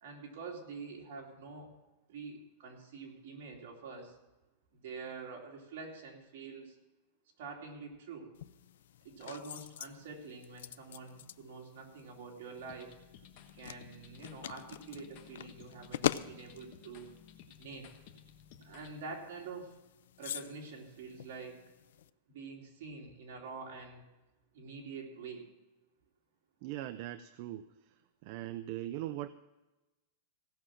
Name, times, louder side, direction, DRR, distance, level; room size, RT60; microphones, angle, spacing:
voice 1, 0.0-1.7 2.1-4.2 4.7-6.8 7.4-8.3 9.0-12.9 13.6-17.1 17.6-17.9 18.6-19.8 20.2-21.6 22.3-24.0 24.5-25.5, right 4 dB, 55° right, -1 dB, 2.9 m, -46 dB
sound 1, 8.3-22.1, left 11 dB, 80° left, 0.4 m, -44 dB
sound 2, 12.6-18.9, left 8 dB, 40° left, 1.3 m, -56 dB
voice 2, 26.6-27.9 28.2-29.3, right 14 dB, 40° right, 13 dB, 0.4 m, -40 dB
16.5 x 6.3 x 7.3 m, 1.1 s
supercardioid pair, 170°, 0 cm